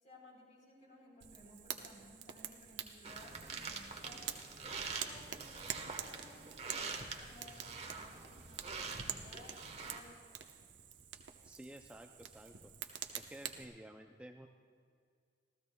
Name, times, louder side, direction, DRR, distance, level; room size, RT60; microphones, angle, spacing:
voice 1, 0.0-4.3 5.0-6.9 7.2-10.3, left 1 dB, 45° left, -2 dB, 3.8 m, -59 dB
Fire, 1.2-13.6, right 9 dB, 85° right, 0.9 m, -48 dB
sound 1, 3.0-10.0, right 4 dB, 35° right, 1.1 m, -45 dB
voice 2, 11.4-12.5 13.1-14.5, right 1 dB, 5° right, 4 dB, 0.4 m, -52 dB
26.5 x 15.0 x 2.3 m, 2.1 s
head